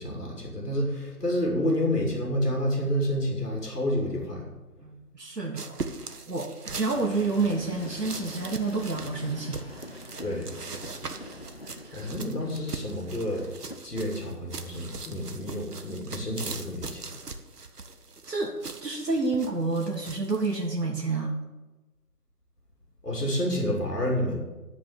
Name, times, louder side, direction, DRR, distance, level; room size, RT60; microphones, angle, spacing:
voice 1, 0.0-4.4 10.2-10.5 11.9-13.4 13.8-17.0 23.0-24.3, equal, 75° left, 0 dB, 2.7 m, -29 dB
voice 2, 4.8-5.8 6.3-9.6 11.8-12.1 18.3-21.4, right 3 dB, 90° right, -1 dB, 1.4 m, -29 dB
sound 1, 5.6-20.7, right 4 dB, 75° right, 1.0 m, -40 dB
Train, 6.9-13.8, left 1 dB, 40° left, 0.6 m, -44 dB
9.6 x 4.8 x 7.3 m, 1.1 s
figure-of-eight pair, 165°, 47 cm